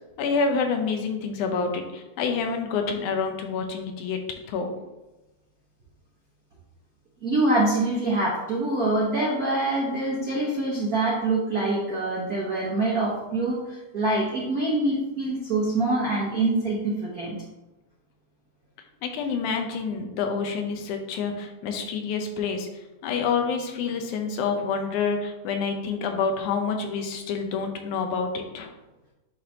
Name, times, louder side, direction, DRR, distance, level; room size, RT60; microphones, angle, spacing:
voice 1, 0.2-4.2 4.5-4.7 19.0-22.7 23.0-28.7, left 5 dB, 85° left, 4 dB, 2.2 m, -27 dB
voice 2, 7.2-17.4, right 2 dB, 80° right, -5 dB, 0.8 m, -25 dB
10.0 x 3.3 x 2.8 m, 1.0 s
omnidirectional pair, 3.4 m